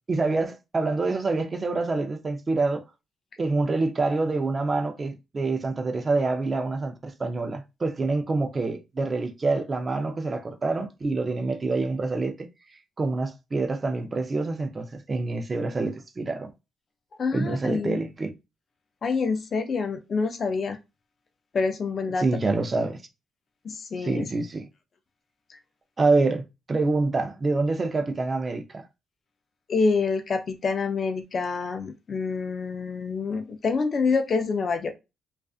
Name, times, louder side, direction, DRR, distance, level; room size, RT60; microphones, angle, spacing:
voice 1, 0.1-2.8 3.4-12.5 13.0-16.5 17.3-18.3 22.2-23.0 24.0-24.7 26.0-28.6, right 3 dB, 30° right, 0.5 m, -26 dB
voice 2, 17.2-18.0 19.0-20.8 21.5-22.2 23.6-24.3 29.7-34.9, left 4 dB, 45° left, 0.5 m, -27 dB
2.4 x 2.4 x 2.4 m
cardioid pair, 90°, 0 cm